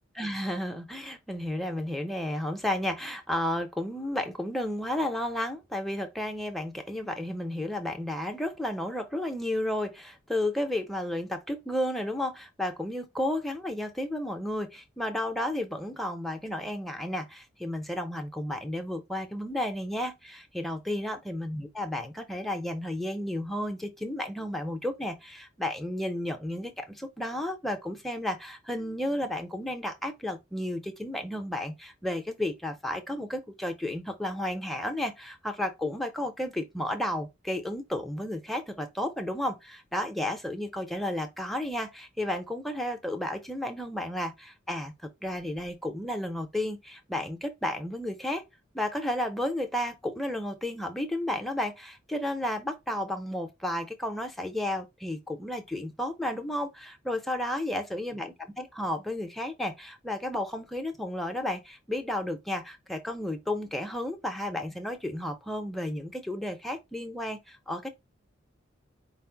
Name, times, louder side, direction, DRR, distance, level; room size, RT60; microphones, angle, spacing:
voice 1, 0.2-48.4 48.7-67.9, left 1 dB, ahead, 0.6 m, -32 dB
4.5 x 2.1 x 4.4 m
head